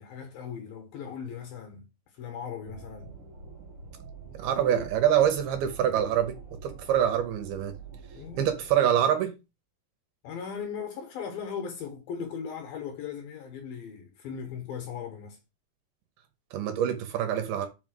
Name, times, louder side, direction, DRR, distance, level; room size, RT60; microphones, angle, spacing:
voice 1, 0.0-3.1 4.5-4.8 8.1-8.5 10.2-15.4, left 7 dB, 70° left, 2.9 m, -38 dB
sound 1, 2.7-8.7, right 4 dB, 50° right, 1.7 m, -46 dB
voice 2, 4.4-6.3 6.6-7.7 8.4-9.3 16.5-17.7, right 10 dB, 80° right, 3.0 m, -25 dB
5.8 x 5.4 x 6.4 m
omnidirectional pair, 4.5 m